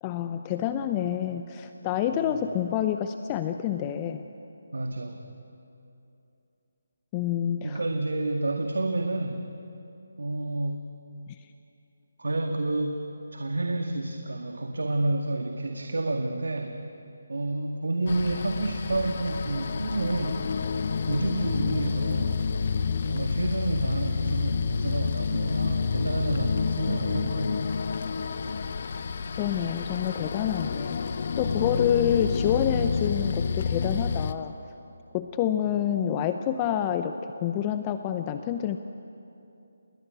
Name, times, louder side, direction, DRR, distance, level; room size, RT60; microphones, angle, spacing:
voice 1, 0.0-4.2 7.1-7.8 11.3-11.4 29.4-34.5 35.1-38.8, left 10 dB, 20° left, 8 dB, 0.8 m, -28 dB
voice 2, 4.7-5.2 7.6-9.5 10.2-10.9 12.2-13.0 13.3-16.8 17.3-20.6 21.1-22.4 23.0-27.8, right 2 dB, 75° right, 4 dB, 2.0 m, -29 dB
sound 1, 18.1-34.3, left 5 dB, 50° left, 1.3 m, -29 dB
29.5 x 21.5 x 8.3 m, 2.8 s
figure-of-eight pair, 155°, 0 cm